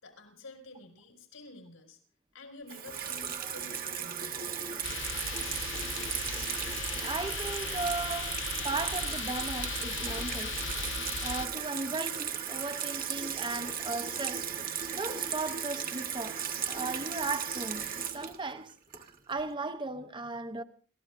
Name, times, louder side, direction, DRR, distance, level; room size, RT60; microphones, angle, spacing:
voice 1, 0.0-2.0 2.3-4.4, left 2 dB, 90° left, 4.8 m, -50 dB
Water tap faucet / Sink (filling or washing), 2.7-19.4, right 8 dB, 45° right, 1.3 m, -36 dB
sound 1, 4.8-11.5, left 7 dB, 60° left, 0.7 m, -37 dB
voice 2, 7.0-8.4 8.6-10.6 11.2-14.5 14.9-18.7 19.0-20.6, right 3 dB, 25° right, 0.7 m, -36 dB
29.0 x 14.5 x 2.5 m
head